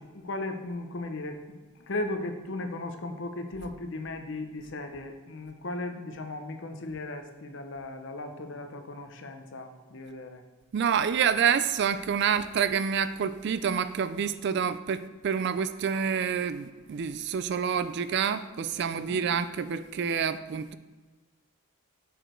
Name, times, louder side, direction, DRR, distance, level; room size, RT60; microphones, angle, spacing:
voice 1, 0.0-10.4 18.9-19.2, left 2 dB, 55° left, 6 dB, 0.7 m, -37 dB
voice 2, 10.7-20.8, right 7 dB, 50° right, 13 dB, 0.3 m, -28 dB
6.4 x 5.0 x 4.4 m, 1.3 s
head